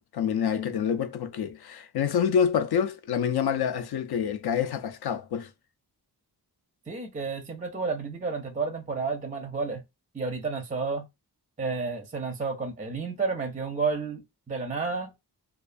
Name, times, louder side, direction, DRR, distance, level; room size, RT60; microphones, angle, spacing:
voice 1, 0.0-5.5, left 7 dB, 70° left, 0.5 m, -27 dB
voice 2, 6.9-9.8 10.1-11.1 11.6-15.1, right 4 dB, 20° right, 0.5 m, -31 dB
2.4 x 2.3 x 2.5 m
wide cardioid pair, 120°, 40 cm